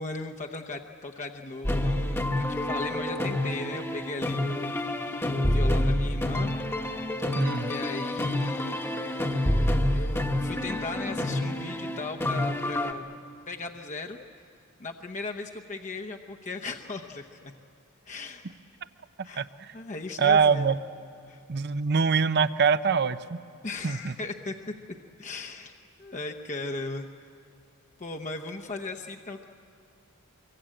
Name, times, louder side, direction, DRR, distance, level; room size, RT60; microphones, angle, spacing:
voice 1, 0.0-5.0 5.2-6.5 7.6-8.8 9.9-13.0 13.5-14.2 14.8-17.5 18.1-18.5 19.2-19.5 19.7-20.7 21.3-21.4 23.6-24.6 25.2-27.1 28.0-29.4, left 3 dB, 35° left, 3 dB, 0.9 m, -37 dB
sound 1, 1.6-12.9, left 1 dB, 10° left, 1.1 m, -28 dB
voice 2, 7.4-7.7 19.4-19.7 20.2-20.8 21.5-23.4 23.8-24.1, right 5 dB, 50° right, 14 dB, 0.6 m, -24 dB
24.5 x 23.0 x 8.9 m, 2.4 s
head